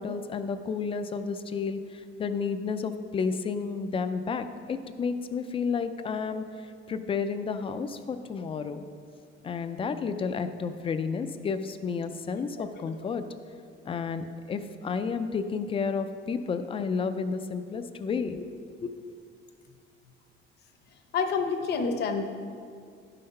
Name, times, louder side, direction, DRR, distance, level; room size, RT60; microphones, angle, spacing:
voice 1, 0.0-8.8 9.4-13.2 13.9-18.9, left 5 dB, 25° left, 10 dB, 0.4 m, -31 dB
voice 2, 21.1-22.2, left 5 dB, 50° left, 6 dB, 0.8 m, -28 dB
11.0 x 5.8 x 5.3 m, 2.3 s
cardioid pair, 165°, 21 cm